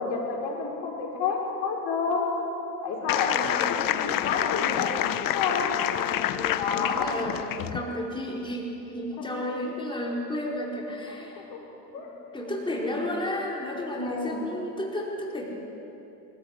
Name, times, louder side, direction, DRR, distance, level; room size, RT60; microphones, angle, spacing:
voice 1, 0.0-2.3 2.8-5.7 6.6-7.1 11.3-11.6 11.9-12.1 14.0-14.4, left 5 dB, 60° left, -1 dB, 6.0 m, -30 dB
voice 2, 3.0-3.9 5.9-11.5 12.0-12.1 12.3-15.4, left 1 dB, 10° left, -3 dB, 4.7 m, -33 dB
sound 1, 3.1-7.8, left 12 dB, 45° left, 1.1 m, -28 dB
24.5 x 15.0 x 9.6 m, 3.0 s
hypercardioid pair, 85°, 49 cm